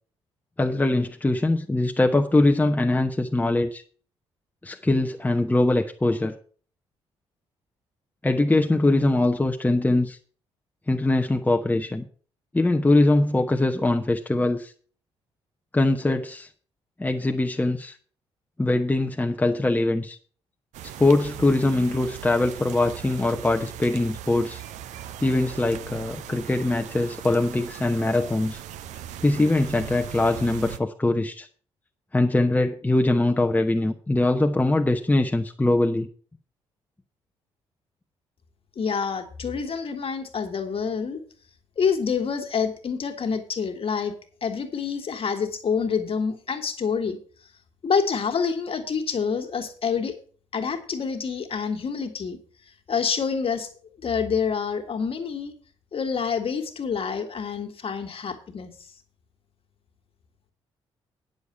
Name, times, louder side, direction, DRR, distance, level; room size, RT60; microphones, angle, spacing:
voice 1, 0.6-3.8 4.6-6.3 8.2-10.2 10.9-12.1 12.5-14.7 15.7-16.5 17.0-17.9 18.6-20.2 21.0-24.6 25.2-28.6 29.2-31.5 32.1-36.1, left 2 dB, 10° left, 4 dB, 0.9 m, -22 dB
sound 1, 20.7-30.8, right 11 dB, 60° right, 0.7 m, -39 dB
voice 2, 38.8-41.2 41.8-44.1 44.4-47.2 47.8-50.1 50.5-52.4 52.9-53.7 54.0-55.5 55.9-58.7, left 6 dB, 40° left, 5 dB, 1.8 m, -27 dB
9.6 x 6.5 x 6.8 m, 0.43 s
figure-of-eight pair, 40°, 14 cm